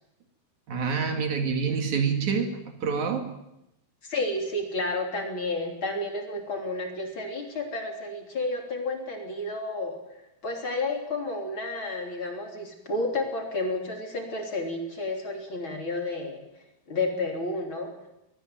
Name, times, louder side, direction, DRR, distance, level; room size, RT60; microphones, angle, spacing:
voice 1, 0.7-3.3, right 5 dB, 60° right, 5 dB, 3.5 m, -27 dB
voice 2, 4.0-10.0 10.4-16.4 16.9-17.9, left 2 dB, 40° left, 3 dB, 3.8 m, -31 dB
22.0 x 18.5 x 9.2 m, 0.88 s
omnidirectional pair, 3.8 m